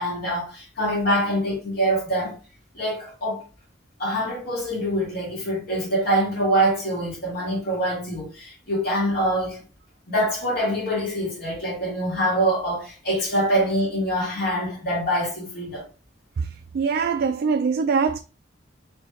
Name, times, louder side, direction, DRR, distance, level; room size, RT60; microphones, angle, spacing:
voice 1, 0.0-2.3 2.7-3.4 4.0-9.6 10.1-15.8, right 1 dB, 55° left, 2.3 m, -24 dB
voice 2, 16.7-18.2, right 5 dB, 55° right, 0.3 m, -22 dB
4.3 x 3.1 x 3.0 m
head